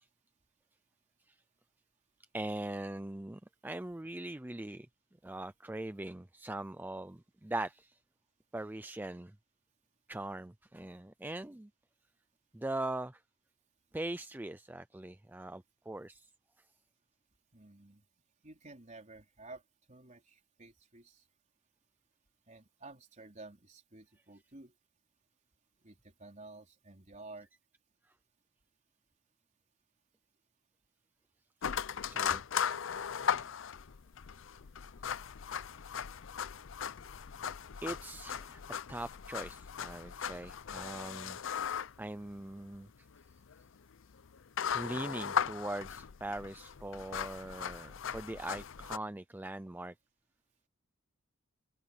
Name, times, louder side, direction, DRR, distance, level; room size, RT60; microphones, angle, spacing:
voice 1, 2.3-4.9 5.2-8.0 8.5-9.3 10.1-11.7 12.5-13.2 13.9-16.3 32.1-32.4 37.8-38.6 38.9-41.4 42.0-42.9 44.7-49.9, right 1 dB, 10° right, 0.4 m, -41 dB
voice 2, 17.5-18.0 18.4-19.6 19.9-21.2 22.5-24.7 25.8-27.5, right 2 dB, 35° right, 4.0 m, -52 dB
sound 1, 31.6-49.0, left 8 dB, 65° left, 0.6 m, -38 dB
head